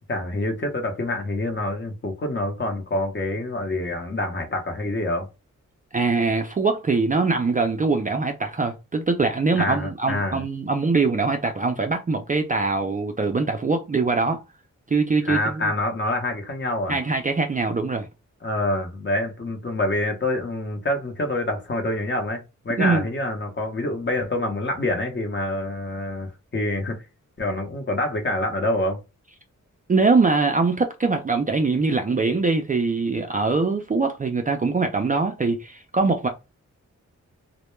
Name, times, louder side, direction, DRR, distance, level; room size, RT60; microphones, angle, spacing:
voice 1, 0.1-5.3 9.6-10.4 15.2-17.0 18.4-27.0 27.4-29.0, left 1 dB, 40° left, 0.8 m, -26 dB
voice 2, 5.9-14.4 14.9-15.7 16.9-18.1 22.8-23.0 29.9-36.3, right 3 dB, 25° right, 0.3 m, -22 dB
2.1 x 2.1 x 3.0 m
wide cardioid pair, 95°, 31 cm